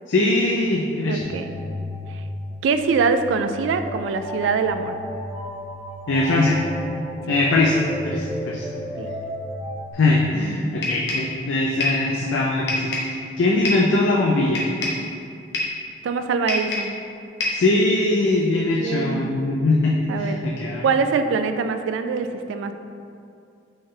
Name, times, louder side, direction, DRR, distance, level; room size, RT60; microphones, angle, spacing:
voice 1, 0.1-1.2 6.1-6.6 7.3-7.8 8.0-8.7 9.9-14.7 17.5-20.8, left 2 dB, 85° left, -3 dB, 0.4 m, -21 dB
voice 2, 1.1-1.5 2.1-2.2 2.6-5.0 7.3-7.4 9.0-9.1 16.0-17.0 18.7-19.4 20.1-20.4 20.8-22.7, right 5 dB, 85° right, 9 dB, 0.3 m, -24 dB
sound 1, 1.2-9.9, left 1 dB, 5° right, 0.6 m, -34 dB
sound 2, 10.8-11.3 11.8-12.1 12.7-13.2 13.7-13.9 14.6-15.1 15.5-15.8 16.5-17.0 17.4-17.7, left 2 dB, 65° left, 0.9 m, -26 dB
4.4 x 3.8 x 3.1 m, 2.4 s
head